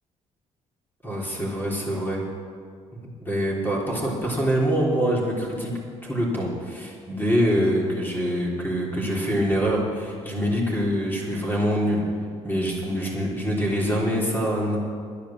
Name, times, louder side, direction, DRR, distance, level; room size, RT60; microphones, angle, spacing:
voice 1, 1.0-2.2 2.9-5.7 6.0-12.0 12.4-14.8, equal, 15° left, -3 dB, 3.3 m, -25 dB
10.5 x 10.5 x 7.2 m, 2.1 s
cardioid pair, 105°, 13 cm